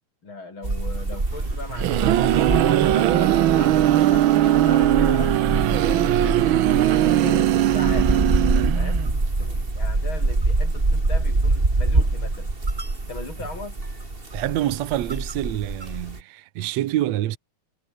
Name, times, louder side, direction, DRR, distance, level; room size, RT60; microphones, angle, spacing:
voice 1, 0.2-5.4 5.9-6.4 6.8-8.4 8.7-9.0 9.4-12.5 13.1-13.8, left 3 dB, 40° left, 6.7 m, -38 dB
sound 1, 0.6-16.2, right 2 dB, 20° right, 3.3 m, -25 dB
sound 2, 1.5-9.2, right 13 dB, 85° right, 1.1 m, -19 dB
voice 2, 14.3-17.4, right 14 dB, 70° right, 2.2 m, -26 dB
omnidirectional pair, 3.4 m